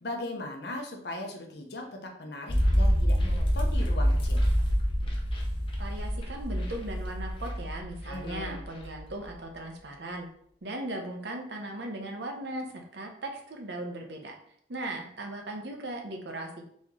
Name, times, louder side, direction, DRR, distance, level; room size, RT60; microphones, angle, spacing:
voice 1, 0.0-4.4 8.1-8.6, left 1 dB, 60° left, 2 dB, 0.8 m, -38 dB
sound 1, 2.5-9.0 9.2-9.3, equal, 30° left, 0.8 m, -27 dB
voice 2, 5.8-10.3 10.6-14.4 14.7-16.6, right 1 dB, 65° right, 2 dB, 0.8 m, -38 dB
4.2 x 3.0 x 3.7 m, 0.65 s
head